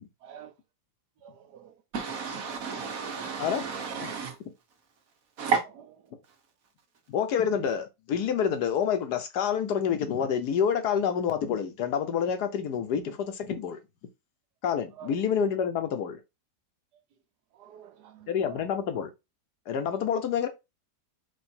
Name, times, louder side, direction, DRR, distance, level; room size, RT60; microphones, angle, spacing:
voice 1, 0.2-0.5 1.2-1.7 2.5-2.6 15.0-15.2 17.5-18.7, right 9 dB, 75° right, 1.3 m, -48 dB
voice 2, 1.9-4.4 5.4-5.6, right 5 dB, 60° right, 1.4 m, -31 dB
voice 3, 7.1-13.8 14.6-16.2 18.3-19.1 19.7-20.5, left 7 dB, 75° left, 1.3 m, -28 dB
4.8 x 2.4 x 4.4 m
omnidirectional pair, 1.8 m